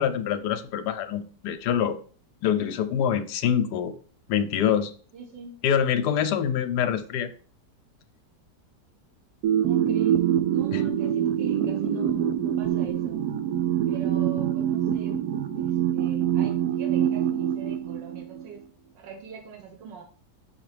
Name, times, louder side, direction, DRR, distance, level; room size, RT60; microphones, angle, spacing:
voice 1, 0.0-2.0 2.4-3.9 4.3-4.9 5.6-7.3 10.7-10.8, left 8 dB, 75° left, 9 dB, 1.1 m, -25 dB
voice 2, 5.1-5.6 9.6-10.2 10.5-13.2 13.9-15.2 15.6-18.6 18.9-20.0, right 6 dB, 90° right, 3 dB, 1.6 m, -44 dB
sound 1, 9.4-18.4, right 10 dB, 70° right, 1.0 m, -25 dB
5.9 x 4.9 x 3.3 m, 0.42 s
omnidirectional pair, 1.9 m